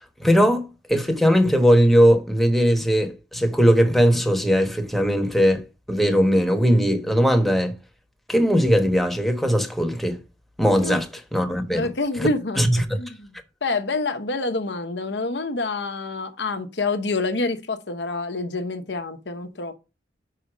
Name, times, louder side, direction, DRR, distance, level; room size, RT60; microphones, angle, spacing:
voice 1, 0.2-7.7 8.3-10.2 10.6-11.9 12.2-12.3 12.6-12.9, equal, ahead, 1.0 m, -19 dB
voice 2, 11.7-12.6 13.0-19.7, left 3 dB, 75° left, 1.0 m, -27 dB
5.3 x 4.9 x 6.0 m
head